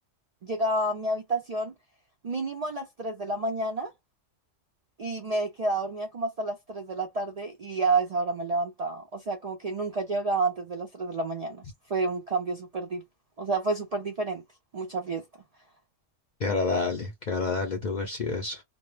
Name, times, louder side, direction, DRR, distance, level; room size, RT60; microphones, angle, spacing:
voice 1, 0.4-1.7 2.2-3.9 5.0-11.6 11.9-13.0 13.4-14.4 14.7-15.2, right 3 dB, 70° right, 0.3 m, -29 dB
voice 2, 16.4-18.6, left 4 dB, 50° left, 0.5 m, -29 dB
2.3 x 2.0 x 3.1 m
omnidirectional pair, 1.3 m